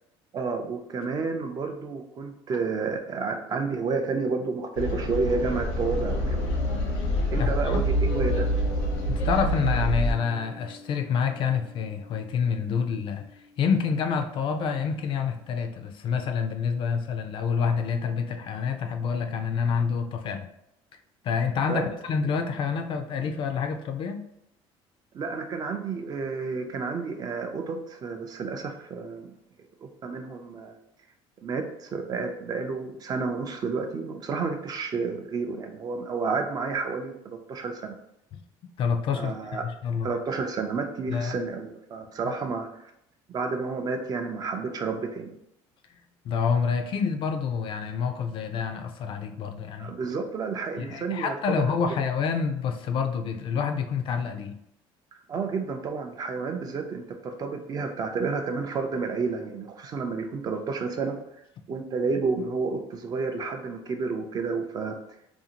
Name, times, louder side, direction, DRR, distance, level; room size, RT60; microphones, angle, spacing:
voice 1, 0.3-6.4 7.3-8.5 21.7-21.9 25.1-29.3 29.8-30.7 31.4-38.0 39.1-39.6 40.0-42.9 43.3-45.3 49.8-51.6 55.3-61.2 61.7-65.0, right 4 dB, 35° right, 5 dB, 0.4 m, -30 dB
sound 1, 4.7-10.1, equal, 90° left, 0.8 m, -26 dB
voice 2, 7.1-7.8 9.2-13.2 13.6-20.5 21.2-24.2 38.3-38.4 38.8-40.1 41.1-41.4 42.2-42.3 46.2-49.9 50.8-54.6, left 6 dB, 50° left, 7 dB, 0.4 m, -28 dB
sound 2, 7.8-14.3, left 1 dB, 65° right, 0.8 m, -43 dB
2.6 x 2.4 x 2.8 m, 0.78 s
cardioid pair, 115°, 11 cm